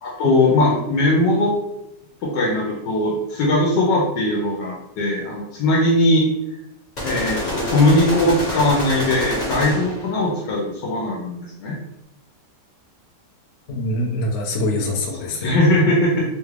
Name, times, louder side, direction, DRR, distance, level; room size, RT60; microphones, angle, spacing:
voice 1, 0.0-1.5 2.2-6.3 7.0-11.8 15.3-16.2, left 1 dB, 90° left, -3 dB, 1.3 m, -19 dB
sound 1, 7.0-10.1, left 1 dB, 35° left, 0.8 m, -26 dB
voice 2, 13.7-15.5, left 1 dB, 70° left, 1 dB, 0.6 m, -24 dB
3.2 x 2.4 x 3.1 m, 0.87 s
omnidirectional pair, 1.9 m